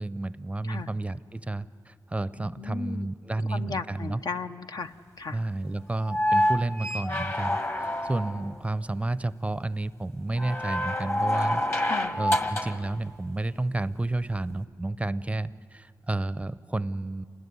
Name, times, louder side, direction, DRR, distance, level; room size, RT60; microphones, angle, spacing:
voice 1, 0.0-4.2 5.3-11.6 12.2-17.3, right 2 dB, 15° right, 17 dB, 0.6 m, -31 dB
voice 2, 2.4-3.1 3.5-5.4 11.8-12.1, left 4 dB, 65° left, 8 dB, 0.9 m, -36 dB
sound 1, 6.0-8.5 10.4-12.9 14.5-14.6, left 1 dB, 35° left, 1.8 m, -27 dB
27.0 x 19.5 x 9.6 m, 2.1 s
cardioid pair, 65°, 7 cm